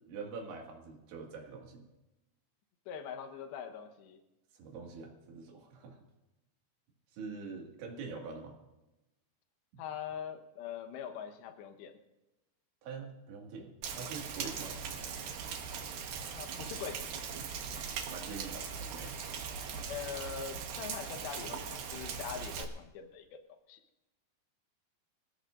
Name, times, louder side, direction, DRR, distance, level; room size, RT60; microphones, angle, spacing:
voice 1, 0.1-1.9 4.5-6.0 7.1-8.5 12.8-14.8 18.1-19.1, right 4 dB, 90° right, 0 dB, 4.4 m, -44 dB
voice 2, 2.9-4.2 8.1-8.2 9.8-12.0 16.3-17.1 19.9-23.4 23.7-23.8, left 8 dB, 75° left, 6 dB, 3.3 m, -43 dB
Rain, 13.8-22.6, right 6 dB, 65° right, 2.7 m, -40 dB
27.0 x 16.5 x 2.6 m, 0.98 s
omnidirectional pair, 5.1 m